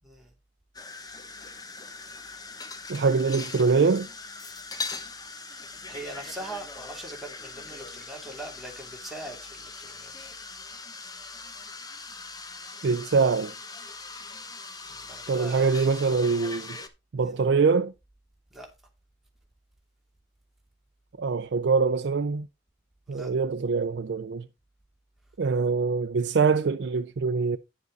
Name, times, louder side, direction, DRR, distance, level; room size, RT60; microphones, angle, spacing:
sound 1, 0.7-16.9, left 3 dB, 20° left, 1.0 m, -41 dB
voice 1, 2.9-4.1 12.8-13.5 15.3-16.8 17.1-17.9 21.2-22.5 23.1-24.5 25.4-27.6, right 4 dB, 70° right, 0.4 m, -24 dB
voice 2, 5.9-10.3 14.8-15.7 17.3-17.4 18.5-18.7 23.1-23.3, right 1 dB, ahead, 2.8 m, -41 dB
9.4 x 7.4 x 3.9 m
head